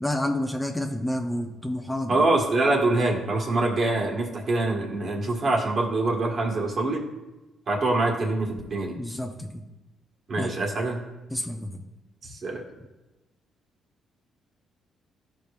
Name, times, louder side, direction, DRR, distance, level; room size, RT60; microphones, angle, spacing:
voice 1, 0.0-2.2 9.0-9.6 10.4-10.5 11.3-11.8, left 1 dB, 5° left, 3 dB, 0.6 m, -29 dB
voice 2, 2.1-7.0 7.7-9.0 10.3-11.0 12.2-12.6, right 2 dB, 50° right, 0 dB, 1.5 m, -25 dB
13.0 x 5.1 x 2.4 m, 1.1 s
cardioid pair, 90°, 0 cm